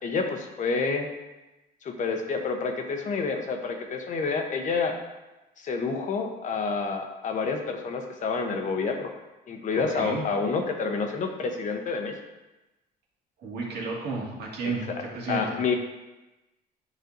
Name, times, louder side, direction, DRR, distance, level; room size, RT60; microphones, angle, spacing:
voice 1, 0.0-1.1 1.8-5.0 5.6-9.1 9.5-12.1 14.6-15.7, left 4 dB, 50° left, 4 dB, 1.0 m, -29 dB
voice 2, 9.9-10.2 13.4-14.8 15.1-15.6, right 3 dB, 75° right, -3 dB, 2.1 m, -32 dB
9.2 x 5.4 x 2.7 m, 1.0 s
cardioid pair, 110°, 17 cm